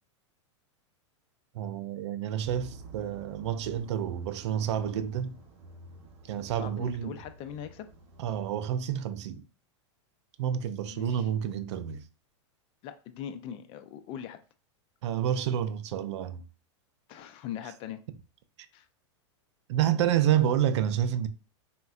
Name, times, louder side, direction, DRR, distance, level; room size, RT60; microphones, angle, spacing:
voice 1, 1.5-5.4 6.3-7.1 8.2-9.4 10.4-12.0 15.0-16.4 19.7-21.3, right 10 dB, 70° right, 0.4 m, -29 dB
sound 1, 2.4-8.7, right 3 dB, 40° right, 0.8 m, -50 dB
voice 2, 6.5-7.9 10.9-11.3 12.8-14.4 17.1-18.0 18.7-18.9, left 9 dB, 35° left, 0.4 m, -41 dB
3.4 x 2.1 x 2.3 m
hypercardioid pair, 130°, 15 cm